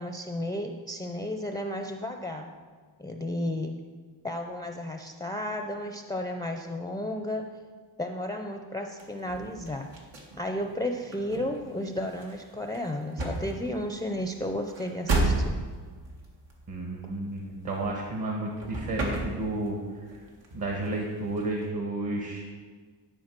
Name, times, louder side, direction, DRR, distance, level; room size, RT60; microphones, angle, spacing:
voice 1, 0.0-2.5 3.0-3.8 4.2-7.5 8.0-9.9 10.4-15.6, left 1 dB, 10° left, 4 dB, 0.5 m, -33 dB
sound 1, 9.0-18.3 18.6-19.8 20.1-21.6, right 2 dB, 85° right, 1.8 m, -33 dB
voice 2, 16.7-19.8 20.5-22.5, right 2 dB, 50° right, 0 dB, 1.4 m, -32 dB
11.5 x 4.6 x 6.0 m, 1.5 s
wide cardioid pair, 125°, 44 cm